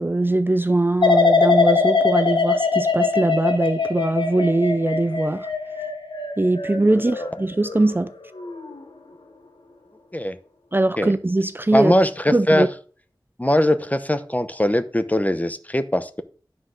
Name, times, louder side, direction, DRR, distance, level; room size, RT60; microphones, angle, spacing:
voice 1, 0.0-5.5 6.4-8.1 10.7-11.9 12.3-12.7, right 2 dB, 25° right, 0.5 m, -21 dB
sound 1, 1.0-8.0 8.4-8.8, left 4 dB, 80° left, 1.1 m, -22 dB
voice 2, 11.7-12.7 13.4-16.2, left 1 dB, 20° left, 0.8 m, -21 dB
9.7 x 3.8 x 6.3 m
wide cardioid pair, 40°, 8 cm